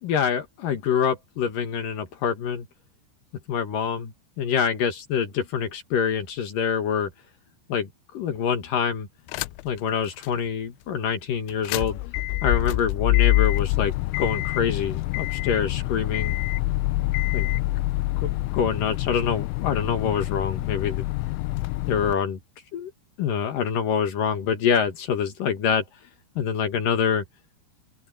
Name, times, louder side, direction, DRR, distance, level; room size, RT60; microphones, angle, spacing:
voice 1, 0.0-2.7 3.5-7.1 7.7-7.9 8.1-9.1 9.6-12.0 12.4-16.4 17.3-17.5 18.2-21.1 21.9-22.4 22.7-22.9 23.2-25.8 26.4-27.2, left 7 dB, 60° left, 2.4 m, -25 dB
sound 1, 9.3-9.8 10.2-10.3 11.5-22.1, left 19 dB, 90° left, 3.2 m, -26 dB
open air
omnidirectional pair, 5.7 m